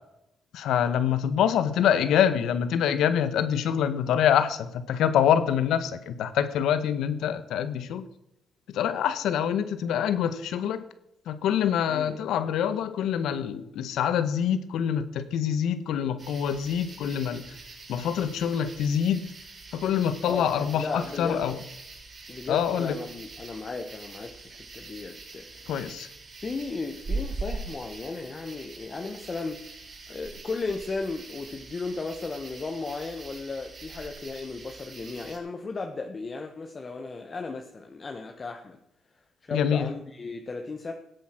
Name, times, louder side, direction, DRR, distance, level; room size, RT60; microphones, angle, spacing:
voice 1, 0.5-8.0 8.7-10.8 11.2-17.4 17.9-19.3 19.7-21.6 22.5-23.0 25.7-26.1 39.5-39.9, left 9 dB, 80° left, 12 dB, 1.5 m, -25 dB
voice 2, 11.9-12.2 20.3-21.5 22.3-25.5 26.4-29.6 30.1-38.8 39.4-40.9, left 3 dB, 35° left, 4 dB, 1.6 m, -35 dB
sound 1, 16.2-35.4, right 3 dB, 40° right, 6.5 m, -42 dB
18.0 x 8.3 x 6.1 m, 0.83 s
cardioid pair, 90°, 0 cm